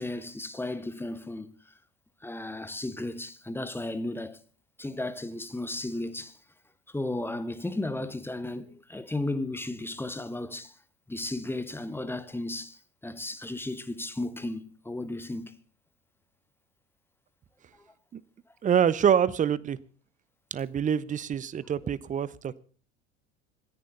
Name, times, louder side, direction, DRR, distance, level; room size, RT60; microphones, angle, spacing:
voice 1, 0.0-1.5 2.2-4.4 4.8-6.3 6.9-10.7 11.1-15.6, left 2 dB, 5° left, 1.4 m, -34 dB
voice 2, 18.6-19.8 20.5-22.6, right 8 dB, 25° right, 0.8 m, -26 dB
26.5 x 10.5 x 4.0 m
hypercardioid pair, 75°, 34 cm